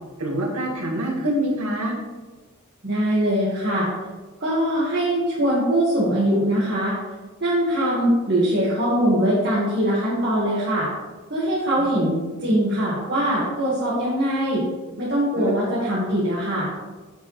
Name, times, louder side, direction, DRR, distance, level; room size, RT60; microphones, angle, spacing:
voice 1, 0.2-1.9 11.8-11.9 15.4-15.6, right 1 dB, 85° right, -1 dB, 2.0 m, -26 dB
voice 2, 2.8-3.9 4.4-6.9 7.4-10.9 11.3-14.6 15.0-16.7, right 1 dB, 50° right, -8 dB, 1.9 m, -22 dB
8.2 x 7.7 x 3.3 m, 1.3 s
head